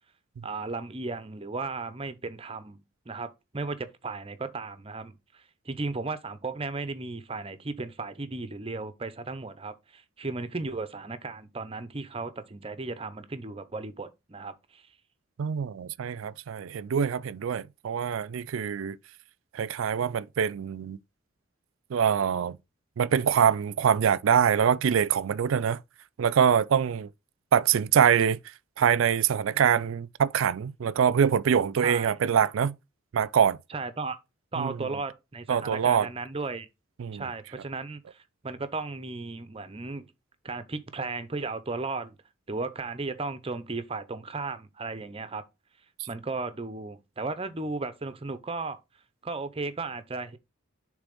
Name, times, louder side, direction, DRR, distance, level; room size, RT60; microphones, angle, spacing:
voice 1, 0.4-2.8 3.1-14.9 31.8-32.1 33.7-34.2 34.5-36.7 37.1-40.1 40.4-42.2 42.5-45.4 46.1-48.8 49.2-50.4, right 3 dB, 25° right, 0.6 m, -35 dB
voice 2, 15.4-19.0 19.5-21.0 21.9-22.6 23.0-25.8 26.2-27.1 27.5-28.4 28.8-32.8 33.1-33.6 34.6-34.8 35.5-36.1 37.0-37.3, right 7 dB, 70° right, 0.4 m, -24 dB
6.8 x 3.3 x 5.3 m
head